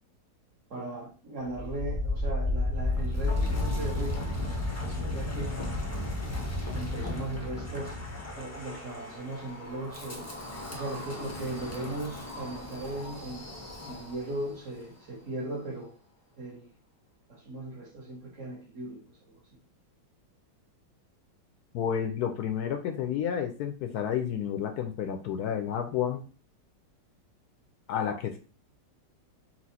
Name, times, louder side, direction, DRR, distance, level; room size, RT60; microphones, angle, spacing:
voice 1, 0.7-5.6 6.7-8.0 8.3-10.3 10.7-13.5 13.8-15.9 16.4-16.7 17.3-19.4, right 2 dB, 45° right, -1 dB, 1.6 m, -38 dB
Wind, 1.4-14.4, left 2 dB, 20° left, 0.4 m, -33 dB
voice 2, 21.7-26.2 27.9-28.4, left 8 dB, 70° left, 6 dB, 1.0 m, -30 dB
4.3 x 2.4 x 4.1 m, 0.37 s
omnidirectional pair, 2.0 m